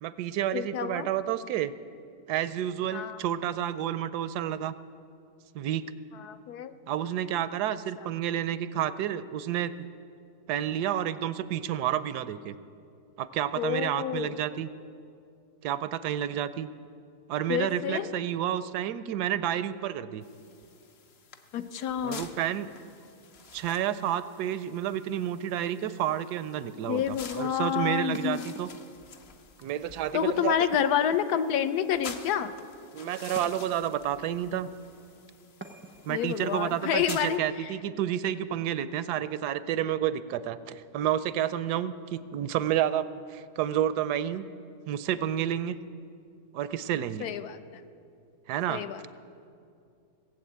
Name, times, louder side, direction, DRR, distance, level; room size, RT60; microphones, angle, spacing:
voice 1, 0.0-1.7 2.3-4.7 5.5-5.8 6.9-9.7 10.5-12.5 13.2-14.7 15.6-16.7 17.3-20.2 22.0-22.7 23.5-28.7 29.6-30.5 32.9-34.7 36.1-44.4 44.8-45.8 46.5-47.3 48.5-48.8, right 10 dB, 85° right, 14 dB, 1.1 m, -30 dB
voice 2, 0.5-1.1 2.9-3.2 6.1-6.7 13.5-14.3 17.5-18.1 21.5-22.2 26.9-28.4 30.1-32.5 36.1-37.7 47.2-47.8 48.7-49.0, left 9 dB, 75° left, 11 dB, 1.2 m, -29 dB
sound 1, 20.2-37.4, left 5 dB, 50° left, 0.9 m, -49 dB
sound 2, 28.1-29.1 30.7-31.7 33.4-34.0 35.6-36.2, right 2 dB, 15° right, 0.4 m, -47 dB
17.0 x 7.8 x 8.6 m, 2.5 s
omnidirectional pair, 1.7 m